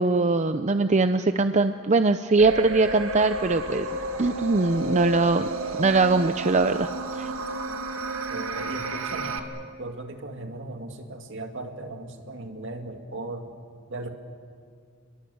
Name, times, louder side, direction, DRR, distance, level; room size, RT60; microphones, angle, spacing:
voice 1, 0.0-3.9 4.2-5.5 5.8-7.3, right 3 dB, 35° right, 9 dB, 0.6 m, -22 dB
sound 1, 2.4-9.4, right 2 dB, 90° right, 1.9 m, -32 dB
voice 2, 8.3-9.4 9.8-13.5 13.9-14.1, right 2 dB, 65° right, 4 dB, 2.4 m, -37 dB
29.0 x 22.0 x 7.9 m, 2.2 s
head